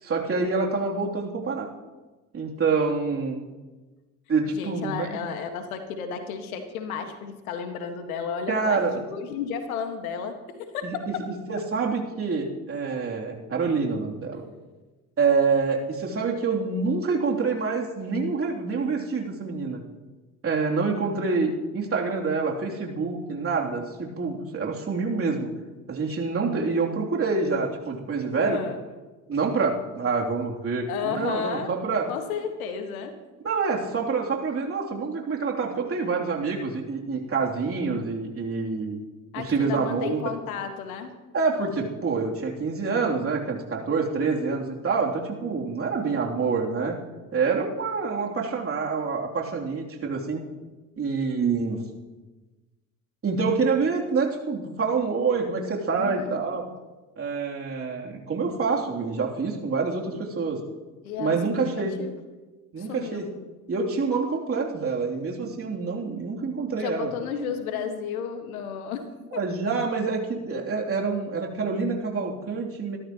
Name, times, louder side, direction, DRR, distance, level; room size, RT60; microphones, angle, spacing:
voice 1, 0.0-1.7 2.3-3.4 4.3-5.2 6.1-6.2 8.5-9.0 11.1-11.2 11.5-14.4 15.2-19.8 20.4-25.5 25.9-28.6 29.3-32.1 33.4-39.0 39.3-40.2 41.3-46.9 47.3-50.4 51.0-51.8 53.2-56.6 57.2-60.6 61.2-62.0 62.7-63.3 63.7-67.1 69.3-73.0, right 4 dB, 30° right, -1 dB, 3.2 m, -26 dB
voice 2, 4.6-11.3 28.4-28.8 30.9-31.7 32.1-33.1 39.3-41.1 56.0-56.4 60.3-60.5 61.0-62.1 62.8-63.3 66.8-69.0 69.3-69.4, left 7 dB, 75° left, 7 dB, 1.8 m, -33 dB
26.0 x 13.0 x 3.1 m, 1.2 s
figure-of-eight pair, 60°, 43 cm